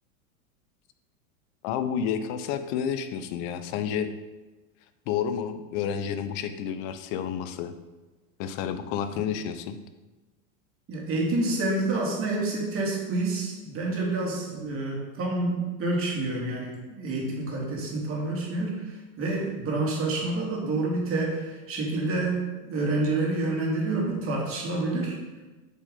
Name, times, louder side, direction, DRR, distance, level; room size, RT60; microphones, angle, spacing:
voice 1, 1.6-4.1 5.1-7.7 8.4-9.8, left 8 dB, 45° left, 10 dB, 0.7 m, -30 dB
voice 2, 10.9-25.2, right 2 dB, 30° right, -2 dB, 2.4 m, -28 dB
8.1 x 5.3 x 3.7 m, 1.2 s
hypercardioid pair, 120°, 44 cm